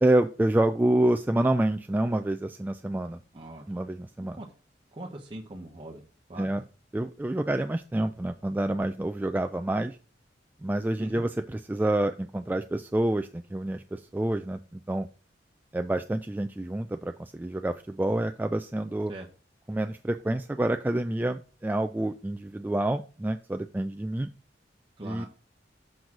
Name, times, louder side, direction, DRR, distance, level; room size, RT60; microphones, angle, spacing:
voice 1, 0.0-3.2 3.7-4.4 6.4-6.6 6.9-10.0 10.6-15.1 15.7-19.1 19.7-24.3 25.0-25.2, right 1 dB, 10° right, 6 dB, 0.3 m, -28 dB
voice 2, 3.3-3.7 4.3-4.5 4.9-6.0 6.3-6.5 11.0-11.2 19.1-19.3 25.0-25.3, right 1 dB, 30° right, -1 dB, 0.9 m, -41 dB
6.3 x 3.9 x 5.9 m, 0.36 s
head